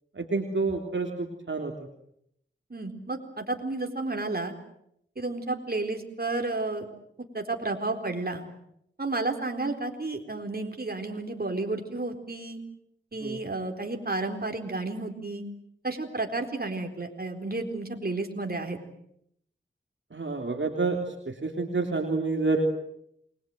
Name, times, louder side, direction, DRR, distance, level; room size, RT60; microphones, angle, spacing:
voice 1, 0.1-1.7 13.2-13.4 20.1-22.7, right 3 dB, 65° right, 3 dB, 3.3 m, -28 dB
voice 2, 2.7-4.5 5.2-6.9 7.3-8.5 9.0-12.6 13.1-15.4 15.8-18.8, right 2 dB, 45° right, 4 dB, 4.2 m, -32 dB
28.5 x 22.0 x 7.9 m, 0.74 s
wide cardioid pair, 55°, 21 cm